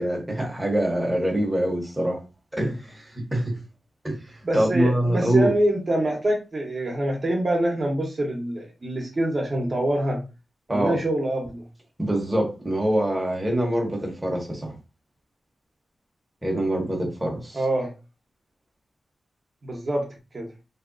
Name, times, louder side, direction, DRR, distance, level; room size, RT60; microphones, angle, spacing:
voice 1, 0.0-2.2 2.5-3.6 4.0-5.6 10.7-11.0 12.0-14.7 16.4-17.6, right 1 dB, 10° right, 0.8 m, -24 dB
voice 2, 4.4-10.2 10.7-11.6 17.5-17.9 19.6-20.1 20.3-20.5, right 1 dB, 40° right, 0.8 m, -25 dB
2.8 x 2.7 x 2.5 m
wide cardioid pair, 110°, 0 cm